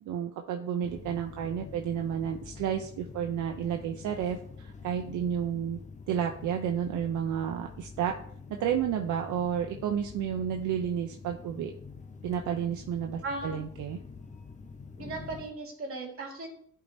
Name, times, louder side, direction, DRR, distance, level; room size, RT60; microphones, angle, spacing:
voice 1, 0.0-5.8 6.1-8.1 8.5-11.7 12.2-14.0, right 8 dB, 80° right, 3 dB, 0.7 m, -31 dB
sound 1, 0.8-15.5, left 4 dB, 25° left, 0.9 m, -46 dB
voice 2, 13.2-13.6 15.0-16.5, right 3 dB, 45° right, 0 dB, 2.6 m, -37 dB
10.5 x 4.7 x 2.7 m, 0.62 s
cardioid pair, 90°, 30 cm